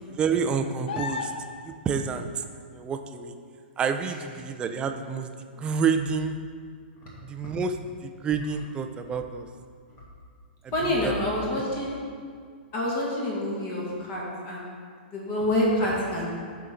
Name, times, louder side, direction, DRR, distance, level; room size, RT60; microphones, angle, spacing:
voice 1, 0.1-1.3 1.6-2.4 2.7-3.3 3.8-6.4 7.2-9.5 10.6-10.7 11.0-11.1, right 6 dB, 15° right, 6 dB, 0.5 m, -28 dB
sound 1, 0.9-1.8 5.3-5.4, left 5 dB, 70° left, 0.6 m, -33 dB
voice 2, 10.7-12.0 12.7-14.7 15.1-16.3, left 1 dB, 35° left, -5 dB, 1.9 m, -27 dB
12.0 x 4.6 x 3.9 m, 2.1 s
hypercardioid pair, 140°, 6 cm